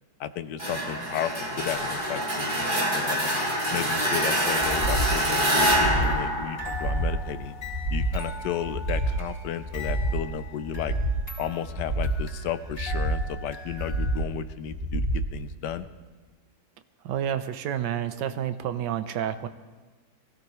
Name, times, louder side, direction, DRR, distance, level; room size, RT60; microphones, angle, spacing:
voice 1, 0.2-3.4 3.7-7.6 7.9-11.0 11.4-15.9, left 9 dB, 80° left, 12 dB, 1.3 m, -33 dB
sound 1, 0.6-7.3, equal, 30° right, 2.3 m, -26 dB
sound 2, 4.6-5.2 5.6-6.2 6.6-7.2 7.6-8.2 8.6-9.2 9.6-10.2 10.6-11.2 11.6-12.2 12.6-13.2 13.7-14.2 14.7-15.3 15.7-15.8, right 1 dB, 45° right, 3.1 m, -28 dB
sound 3, 5.9-14.2, left 3 dB, 35° left, 3.9 m, -42 dB
voice 2, 17.0-19.5, right 10 dB, 90° right, 11 dB, 1.4 m, -29 dB
23.0 x 16.5 x 3.1 m, 1.4 s
omnidirectional pair, 1.8 m